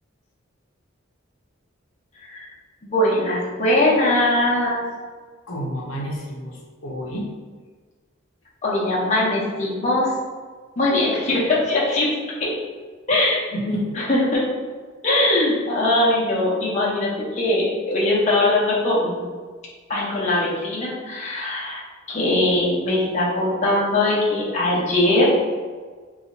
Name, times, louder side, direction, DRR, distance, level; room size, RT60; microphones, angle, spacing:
voice 1, 2.8-4.8 8.6-10.1 10.8-12.6 13.1-13.4 13.9-14.5 15.0-19.2 19.9-21.8 22.1-25.3, left 1 dB, 35° left, -6 dB, 0.8 m, -21 dB
voice 2, 5.5-7.3 13.5-13.9, equal, 85° left, -2 dB, 0.7 m, -29 dB
2.7 x 2.4 x 4.1 m, 1.5 s
head